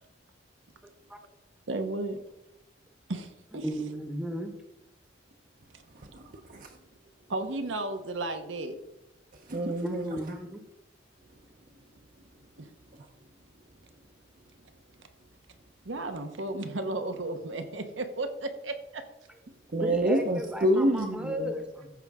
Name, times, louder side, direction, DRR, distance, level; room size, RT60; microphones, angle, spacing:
voice 1, 0.8-1.2 3.6-4.5 9.8-10.6 19.8-21.9, equal, 5° right, 5 dB, 0.9 m, -35 dB
voice 2, 1.7-2.2 3.1-3.6 5.7-5.8 7.3-8.8 12.6-12.7 15.8-19.0, right 2 dB, 75° right, 7 dB, 1.0 m, -34 dB
voice 3, 6.0-6.7 9.5-10.2 19.7-21.5, right 1 dB, 45° right, 3 dB, 0.7 m, -27 dB
14.0 x 5.1 x 3.6 m, 0.88 s
head